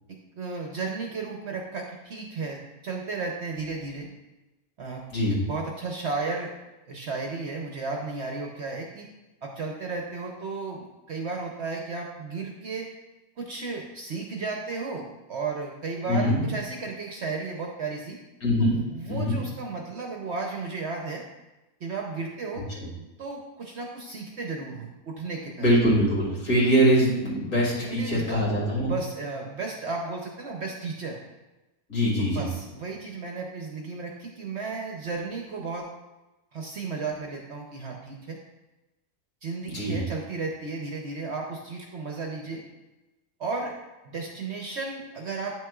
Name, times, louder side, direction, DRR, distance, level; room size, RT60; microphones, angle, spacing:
voice 1, 0.4-4.1 4.8-5.0 5.4-6.5 6.9-9.1 9.4-12.9 13.4-18.2 18.6-21.2 21.8-22.6 23.2-25.7 27.8-28.4 28.9-31.2 32.2-35.9 36.5-38.4 39.4-42.6 43.4-43.7 44.0-45.6, right 4 dB, 55° right, 0 dB, 0.9 m, -34 dB
voice 2, 5.1-5.4 16.1-16.4 18.4-18.8 19.1-19.4 22.8-22.9 25.6-28.9 31.9-32.4 39.7-40.0, equal, 70° left, -6 dB, 2.7 m, -23 dB
9.1 x 6.2 x 2.3 m, 1.0 s
omnidirectional pair, 1.6 m